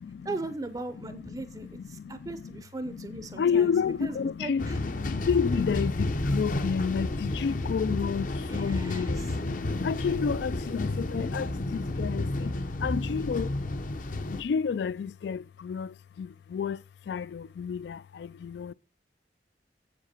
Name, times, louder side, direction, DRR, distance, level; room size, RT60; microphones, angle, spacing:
voice 1, 0.2-3.7 4.0-4.8 8.5-9.3, right 2 dB, 20° right, 0.5 m, -38 dB
voice 2, 3.4-4.7 5.2-5.9 6.3-7.1 7.4-8.3 8.5-9.2 9.8-10.9 11.1-11.5 11.7-12.2 12.8-13.5 14.4-15.4 15.7-15.9 16.5-16.8 17.1-17.2 17.6-17.8 18.6-18.7, left 6 dB, 70° left, 0.3 m, -28 dB
sound 1, 4.6-14.4, left 2 dB, 45° left, 0.7 m, -31 dB
7.6 x 7.4 x 4.3 m
head